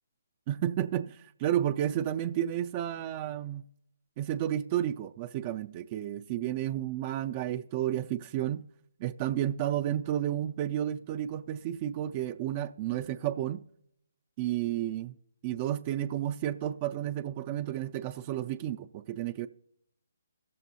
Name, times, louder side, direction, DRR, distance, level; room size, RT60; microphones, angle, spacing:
voice 1, 0.5-3.6 4.2-8.6 9.0-13.6 14.4-15.1 15.4-19.5, right 11 dB, 30° right, 0.3 m, -31 dB
17.0 x 6.9 x 2.7 m
figure-of-eight pair, 140°, 0 cm